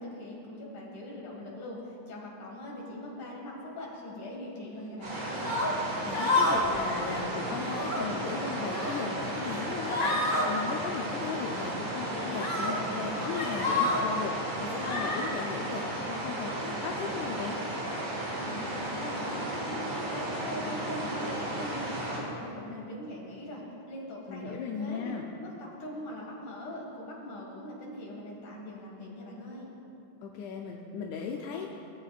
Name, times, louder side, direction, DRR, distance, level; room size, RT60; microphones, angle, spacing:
voice 1, 0.0-5.5 18.4-29.7, left 1 dB, 45° left, -3 dB, 2.6 m, -41 dB
sound 1, 5.0-22.2, right 1 dB, 70° right, 3.7 m, -34 dB
sound 2, 5.4-5.7 6.1-6.7 7.0-7.2 7.6-8.0 8.5-9.0 9.4-9.6 9.9-10.4 11.5-11.7 12.3-12.7 13.1-14.0 14.8-15.3, left 2 dB, 20° left, 0.5 m, -29 dB
voice 2, 6.1-10.2 10.5-17.6 24.3-25.2 30.2-31.7, left 5 dB, 80° left, 1 dB, 2.0 m, -37 dB
18.0 x 8.5 x 2.4 m, 2.7 s
omnidirectional pair, 3.4 m